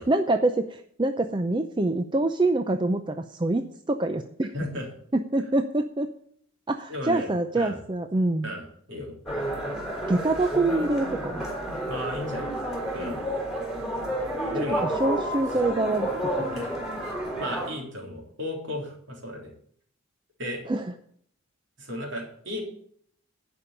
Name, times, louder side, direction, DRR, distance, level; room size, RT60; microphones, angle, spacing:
voice 1, 0.0-4.5 5.1-6.1 6.7-8.5 10.1-11.4 14.8-16.1 16.4-16.5 20.7-20.8, right 2 dB, 20° right, 7 dB, 0.5 m, -25 dB
voice 2, 4.5-4.9 6.9-7.8 8.4-9.1 11.9-12.5 12.9-13.2 14.5-14.8 16.4-16.7 17.0-19.5 20.4-20.6 21.8-22.6, left 1 dB, 60° right, 0 dB, 3.5 m, -35 dB
sound 1, 9.3-17.7, right 1 dB, ahead, 3.5 m, -30 dB
11.5 x 5.4 x 8.6 m, 0.63 s
head